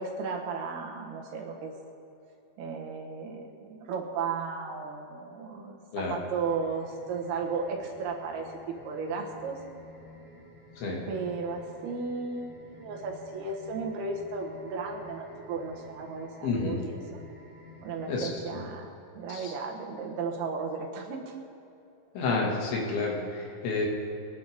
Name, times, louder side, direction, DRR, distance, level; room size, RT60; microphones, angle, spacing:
voice 1, 0.0-1.7 2.6-9.6 11.1-17.2 17.8-21.4, right 4 dB, 85° right, 1 dB, 3.5 m, -35 dB
sound 1, 6.4-18.2, left 2 dB, 30° left, 3.2 m, -50 dB
voice 2, 16.4-16.8 18.1-18.6 19.3-19.5 22.1-23.9, left 3 dB, 80° left, -1 dB, 4.0 m, -30 dB
23.0 x 10.5 x 3.6 m, 2.8 s
omnidirectional pair, 4.4 m